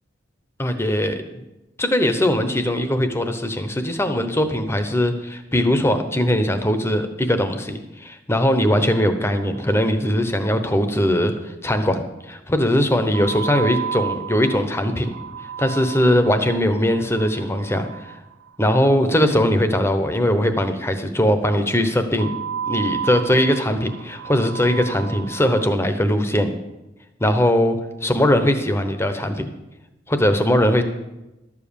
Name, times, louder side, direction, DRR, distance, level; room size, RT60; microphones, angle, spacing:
voice 1, 0.6-1.4 1.8-11.3 11.6-15.1 15.6-17.9 18.6-22.3 22.7-26.5 27.2-29.5 30.1-30.8, equal, 15° left, 8 dB, 0.9 m, -20 dB
sound 1, 8.9-9.9 10.1-10.2 10.5-10.6 13.1-19.3 22.2-25.8, right 7 dB, 85° right, 0.5 m, -32 dB
12.5 x 7.3 x 6.9 m, 1.0 s
head